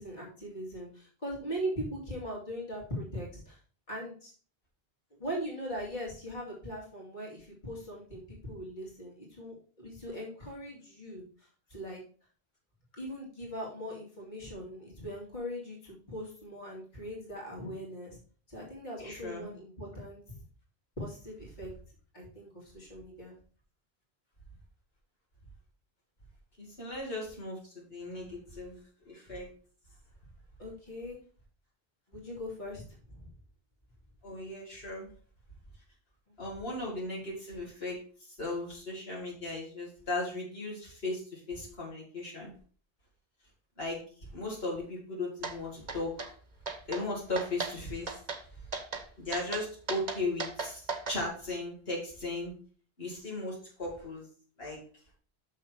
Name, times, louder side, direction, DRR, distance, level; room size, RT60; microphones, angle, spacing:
voice 1, 0.0-3.6 3.9-4.3 5.2-12.0 12.9-18.2 18.5-20.4 21.0-21.7 22.1-23.4 30.6-31.2 32.1-32.8 33.1-33.3, equal, 50° left, -4 dB, 2.7 m, -40 dB
voice 2, 19.0-19.5 26.6-28.8 29.1-29.5 34.2-35.1 36.4-38.0 38.3-42.5 43.8-46.3 46.9-48.2 49.2-50.8 51.1-52.5 53.0-54.3 54.6-54.8, left 2 dB, 75° left, -4 dB, 2.7 m, -37 dB
sound 1, 45.4-45.6 45.9-46.3 46.7-47.0 47.4-47.7 48.1-48.4 48.7-49.0 49.3-51.2, right 4 dB, 40° right, 1.1 m, -36 dB
6.5 x 6.3 x 4.5 m, 0.41 s
omnidirectional pair, 1.0 m